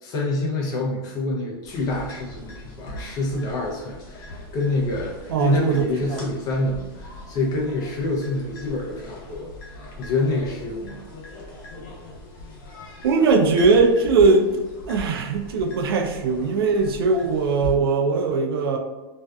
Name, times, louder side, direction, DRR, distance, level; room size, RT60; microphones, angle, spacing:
voice 1, 0.0-11.0, left 2 dB, 30° left, -2 dB, 0.5 m, -27 dB
sound 1, 1.6-17.8, left 1 dB, 60° left, 0.8 m, -40 dB
voice 2, 5.3-6.3 13.0-14.5 14.9-18.8, right 4 dB, 85° right, 4 dB, 0.4 m, -20 dB
2.6 x 2.3 x 2.2 m, 1.1 s
supercardioid pair, 140°, 12 cm